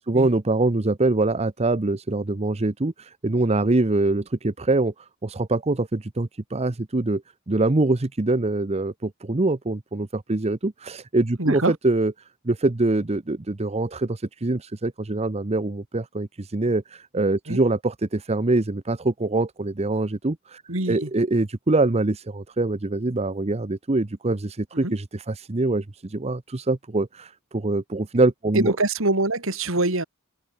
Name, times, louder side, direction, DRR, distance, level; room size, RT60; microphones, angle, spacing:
voice 1, 0.0-4.9 5.2-7.2 7.5-12.1 12.4-20.6 20.9-28.7, right 2 dB, 30° right, 0.8 m, -24 dB
voice 2, 11.4-11.7 17.5-17.6 20.7-21.1 24.8-25.0 28.5-30.0, right 2 dB, 65° right, 3.7 m, -24 dB
open air
head